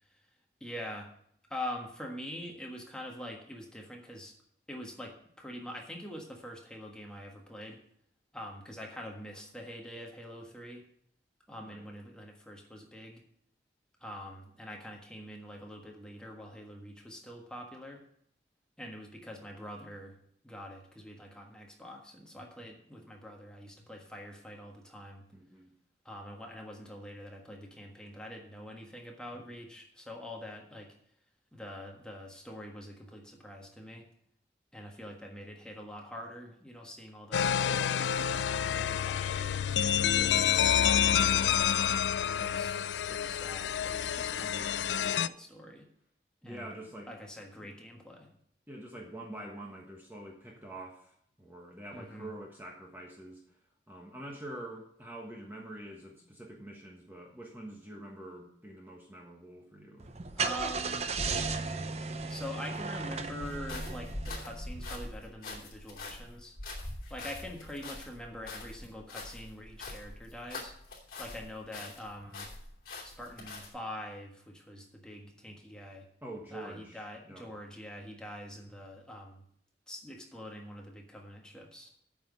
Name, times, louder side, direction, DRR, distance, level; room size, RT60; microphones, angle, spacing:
voice 1, 0.6-1.1 1.5-4.3 4.7-7.8 8.3-10.8 11.5-13.2 14.0-18.0 18.8-20.2 20.4-25.3 26.0-30.9 31.5-34.1 34.7-41.2 42.4-45.9 46.4-46.7 47.1-48.3 51.9-52.3 60.4-61.1 62.3-66.6 67.1-70.8 71.2-72.5 73.0-76.1 76.5-79.4 79.9-81.9, equal, 5° left, 0 dB, 1.4 m, -45 dB
voice 2, 25.3-25.7 46.4-47.1 48.7-53.4 53.9-60.1 76.2-77.5, right 1 dB, 10° right, -1 dB, 1.3 m, -46 dB
sound 1, 37.3-45.3, left 9 dB, 80° left, 0.4 m, -28 dB
Car / Engine starting, 60.0-64.7, right 4 dB, 35° right, 0.6 m, -35 dB
sound 2, 63.4-71.5 71.7-73.7, left 2 dB, 50° left, 2.9 m, -43 dB
8.9 x 6.0 x 8.3 m, 0.68 s
head